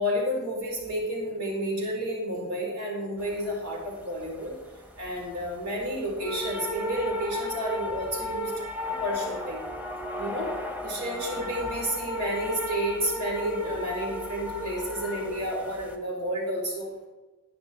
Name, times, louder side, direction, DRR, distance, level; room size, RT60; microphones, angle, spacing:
voice 1, 0.0-4.6 5.0-8.5 9.0-9.6 10.2-10.5 10.8-16.9, equal, 90° right, -2 dB, 4.4 m, -31 dB
sound 1, 3.2-16.0, left 1 dB, 5° right, 0.9 m, -36 dB
10.5 x 10.5 x 4.6 m, 1.1 s
head